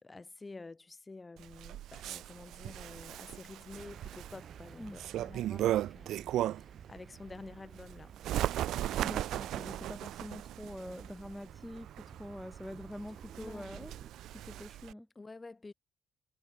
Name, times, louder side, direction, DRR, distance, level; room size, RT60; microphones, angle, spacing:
voice 1, 0.0-6.2 6.5-8.1 13.4-13.8 15.2-15.7, left 3 dB, 25° left, 3.5 m, -49 dB
Bird, 1.4-6.8 7.2-14.9, right 13 dB, 80° right, 0.8 m, -37 dB
sound 1, 3.7-14.1, right 8 dB, 55° right, 1.1 m, -53 dB
voice 2, 9.0-13.9 14.3-15.1, left 1 dB, 5° left, 1.0 m, -45 dB
cardioid pair, 90°, 0 cm